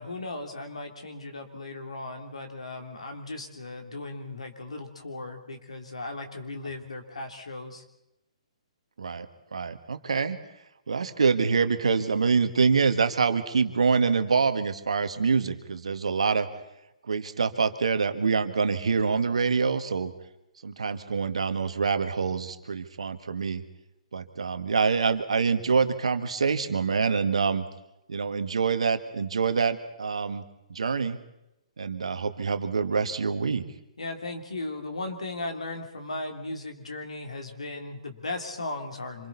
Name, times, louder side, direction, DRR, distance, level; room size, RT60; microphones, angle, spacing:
voice 1, 0.0-7.8 34.0-39.3, left 2 dB, 75° left, 4 dB, 3.3 m, -37 dB
voice 2, 9.5-10.4 10.9-16.5 17.1-20.1 20.6-23.6 24.1-27.6 28.1-30.4 30.7-31.2 31.8-33.6, right 5 dB, 70° right, 9 dB, 1.8 m, -25 dB
27.0 x 27.0 x 4.2 m, 0.90 s
figure-of-eight pair, 125°, 3 cm